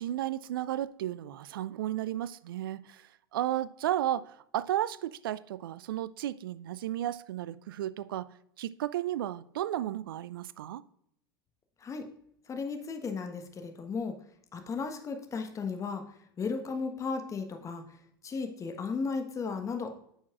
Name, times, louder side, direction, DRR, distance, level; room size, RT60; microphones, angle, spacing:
voice 1, 0.0-10.8, right 12 dB, 70° right, 0.4 m, -34 dB
voice 2, 12.5-14.2 14.5-16.0 16.4-17.8 18.2-19.9, left 4 dB, 25° left, 1.1 m, -35 dB
9.1 x 6.1 x 2.4 m
hypercardioid pair, 85°, 12 cm